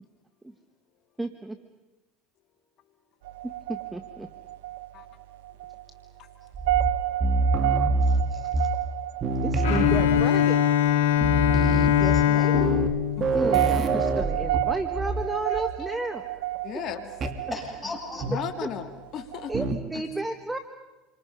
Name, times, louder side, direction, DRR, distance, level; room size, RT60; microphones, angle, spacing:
voice 1, 1.2-1.6 3.4-4.3 9.4-10.6 13.3-16.3 18.6-18.7 19.5-20.6, right 2 dB, 10° right, 8 dB, 1.5 m, -32 dB
sound 1, 3.2-19.7, right 16 dB, 85° right, 0.9 m, -32 dB
sound 2, 6.5-9.0 9.2-10.5 10.9-11.0 11.2-15.3 15.5-15.9 17.2-17.4 18.2-18.6 19.5-19.9, right 2 dB, 40° right, 2.5 m, -26 dB
voice 2, 8.0-8.7 12.0-12.7 17.5-18.3, left 3 dB, 15° left, 1 dB, 7.7 m, -36 dB
Bowed string instrument, 9.6-14.5, left 11 dB, 85° left, 2.2 m, -23 dB
voice 3, 13.7-14.1 15.5-15.6 16.6-17.1 18.2-19.5, left 9 dB, 50° left, 7 dB, 2.3 m, -36 dB
29.0 x 25.0 x 5.5 m, 1.1 s
supercardioid pair, 95°, 0 cm